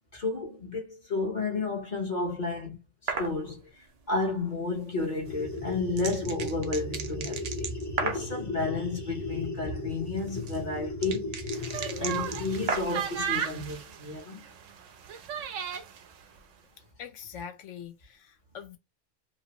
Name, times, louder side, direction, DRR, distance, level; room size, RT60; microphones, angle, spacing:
voice 1, 0.1-3.6 4.1-7.7 8.0-14.4, left 3 dB, 40° left, 0.9 m, -32 dB
sound 1, 3.1-3.4 5.3-8.3 9.9-13.1, right 5 dB, 60° right, 0.4 m, -35 dB
sound 2, 5.2-12.7, left 2 dB, 20° left, 0.5 m, -36 dB
sound 3, 11.5-16.0, right 8 dB, 80° right, 1.0 m, -35 dB
voice 2, 17.0-18.8, left 8 dB, 75° left, 0.9 m, -43 dB
3.0 x 2.4 x 2.8 m
omnidirectional pair, 1.3 m